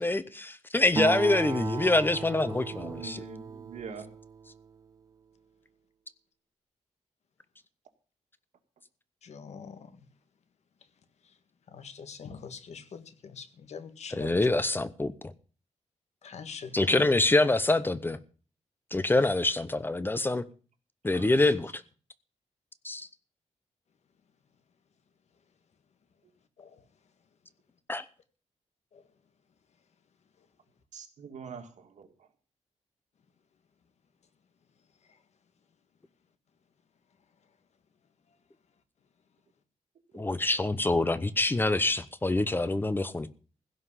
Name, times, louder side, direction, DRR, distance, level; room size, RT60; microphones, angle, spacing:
voice 1, 0.0-3.2 14.1-15.3 16.7-18.2 18.9-20.4 21.0-21.7 22.8-23.1 27.9-28.0 40.1-43.3, left 2 dB, 15° left, 0.7 m, -26 dB
Acoustic guitar, 1.0-4.8, right 5 dB, 30° right, 0.6 m, -36 dB
voice 2, 2.7-4.1 21.1-21.6 30.9-32.3 40.1-40.3, right 5 dB, 75° right, 2.3 m, -44 dB
voice 3, 9.2-9.9 11.7-14.5 16.2-17.1 19.1-19.3 26.6-26.8 28.9-29.0, left 6 dB, 65° left, 1.7 m, -44 dB
16.0 x 5.7 x 9.8 m
wide cardioid pair, 155°, 12 cm